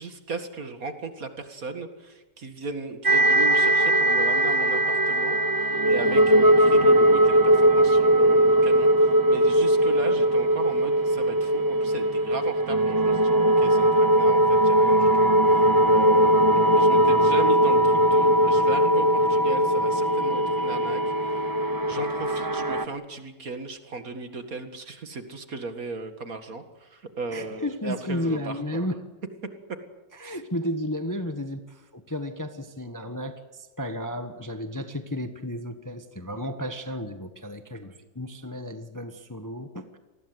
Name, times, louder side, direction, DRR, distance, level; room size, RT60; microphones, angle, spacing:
voice 1, 0.0-21.6 21.9-28.9 29.7-29.8 30.2-30.4, right 3 dB, 50° right, 8 dB, 2.3 m, -37 dB
sound 1, 3.0-22.8, right 1 dB, 30° right, 0.4 m, -20 dB
voice 2, 27.3-29.0 30.2-40.0, left 1 dB, 10° left, 8 dB, 1.1 m, -33 dB
27.5 x 20.0 x 8.0 m, 1.1 s
omnidirectional pair, 1.9 m